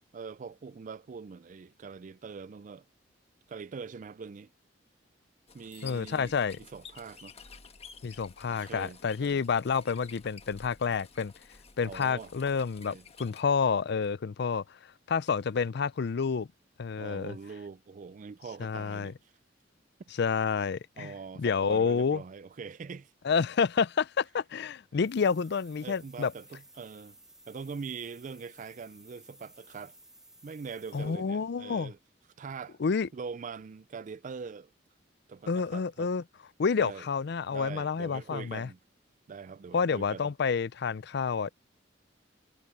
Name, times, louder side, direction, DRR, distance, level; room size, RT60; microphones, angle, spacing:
voice 1, 0.1-2.9 3.5-4.5 5.5-7.3 8.5-9.4 11.8-12.3 12.9-13.0 17.0-19.3 21.0-23.1 25.8-27.2 27.5-30.0 30.4-32.0 32.4-32.8 33.1-34.7 35.3-36.1 36.8-37.1 37.5-38.8 39.3-40.3, right 5 dB, 45° right, 0.4 m, -43 dB
sound 1, 5.5-13.4, left 6 dB, 35° left, 1.3 m, -51 dB
Bicycle bell, 5.6-7.4, left 17 dB, 85° left, 5.7 m, -66 dB
voice 2, 5.8-6.6 8.0-11.3 11.8-14.8 15.1-16.5 16.8-17.4 18.6-19.1 20.2-21.1 21.4-22.2 23.2-26.3 30.9-31.9 32.8-33.1 35.5-36.2 36.6-38.7 39.7-41.5, left 5 dB, 60° left, 0.5 m, -29 dB
sound 2, 25.0-31.4, right 1 dB, 5° right, 1.8 m, -57 dB
head